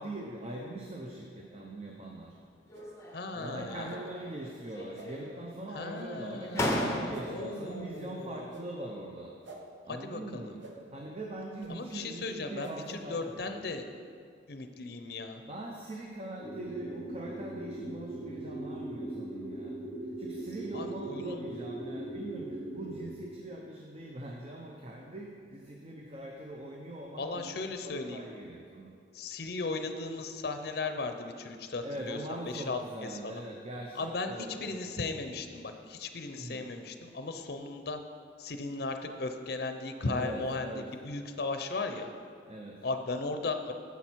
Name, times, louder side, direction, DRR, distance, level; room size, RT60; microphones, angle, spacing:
voice 1, 0.0-2.3 3.3-9.3 9.8-10.6 10.9-13.3 15.4-19.8 20.2-28.9 31.8-34.9 36.4-36.7 40.0-40.9 42.5-42.8, right 1 dB, 30° right, -1 dB, 0.7 m, -42 dB
sound 1, 2.7-3.3 3.7-4.4 4.7-5.5 6.1-6.2 6.5-7.5, left 1 dB, 15° left, 0.7 m, -35 dB
sound 2, 2.7-2.9 3.8-4.0 4.9-5.1 5.9-6.1 7.1-7.3 8.5-8.7 9.4-9.6 10.6-10.7 11.6-11.7 12.6-12.8, right 2 dB, 85° right, 1.3 m, -48 dB
voice 2, 3.1-3.9 5.7-8.5 9.9-10.5 11.7-13.8 14.5-15.4 20.7-21.4 27.2-28.2 29.1-32.8 33.2-33.4 33.9-38.0 38.4-40.7 41.0-42.1 42.8-43.7, left 3 dB, 55° left, 7 dB, 0.6 m, -36 dB
sound 3, 16.4-23.1, right 1 dB, 65° right, 2.7 m, -39 dB
9.9 x 7.2 x 4.5 m, 2.3 s
head